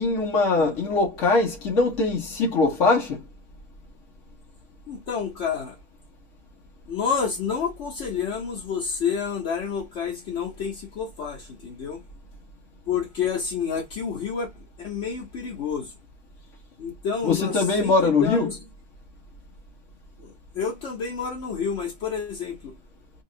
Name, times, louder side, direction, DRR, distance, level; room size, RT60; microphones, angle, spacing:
voice 1, 0.0-3.2 17.2-18.5, left 3 dB, 85° left, 1.5 m, -22 dB
voice 2, 4.9-5.8 6.9-12.0 12.9-14.5 14.8-15.9 16.8-18.6 20.2-22.8, left 6 dB, 70° left, 1.2 m, -29 dB
3.6 x 3.1 x 2.4 m
omnidirectional pair, 1.2 m